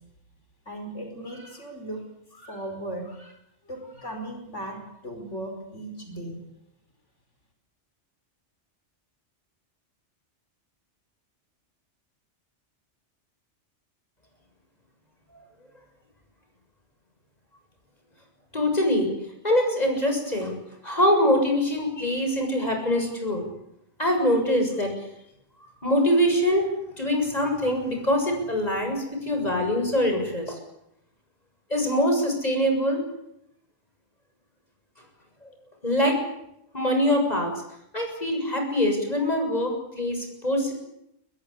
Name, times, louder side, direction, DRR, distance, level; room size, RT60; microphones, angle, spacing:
voice 1, 0.7-2.0 2.3-3.4 3.7-6.4, right 1 dB, 85° left, 4 dB, 5.4 m, -37 dB
voice 2, 18.5-19.1 19.4-20.6 20.8-23.4 24.0-24.9 25.8-26.7 27.0-30.6 31.7-33.0 35.8-36.2 36.7-37.5 37.9-40.7, left 1 dB, 35° left, 4 dB, 7.4 m, -23 dB
24.5 x 20.5 x 8.5 m, 0.80 s
omnidirectional pair, 1.2 m